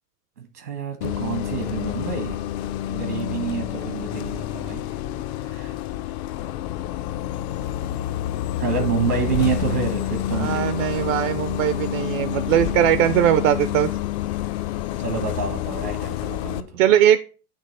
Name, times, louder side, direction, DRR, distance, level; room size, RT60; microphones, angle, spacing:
voice 1, 0.4-2.4 2.9-4.8 5.4-5.7 8.6-11.3 15.0-16.9, right 5 dB, 85° right, 7 dB, 1.5 m, -28 dB
Bus, 1.0-16.6, left 12 dB, 45° left, 0.5 m, -28 dB
voice 2, 10.4-13.9 16.8-17.2, right 11 dB, 60° right, 11 dB, 0.6 m, -20 dB
8.9 x 3.0 x 4.1 m, 0.36 s
figure-of-eight pair, 85°, 45 cm